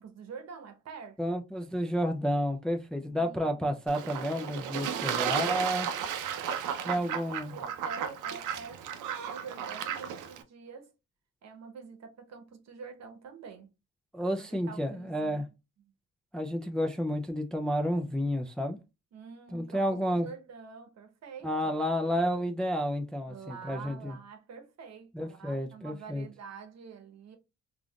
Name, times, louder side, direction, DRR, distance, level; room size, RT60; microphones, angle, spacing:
voice 1, 0.0-1.4 3.0-3.8 4.2-4.3 4.7-10.9 11.4-13.7 14.4-15.4 19.1-21.8 23.3-27.4, right 5 dB, 60° right, 0.9 m, -47 dB
voice 2, 1.2-5.9 6.8-7.5 14.1-15.4 16.3-18.8 19.5-20.3 21.4-24.1 25.1-26.2, equal, 5° left, 0.4 m, -31 dB
Fowl / Bird / Water, 3.9-10.4, right 8 dB, 85° right, 0.6 m, -34 dB
3.5 x 2.4 x 2.3 m
cardioid pair, 90°, 30 cm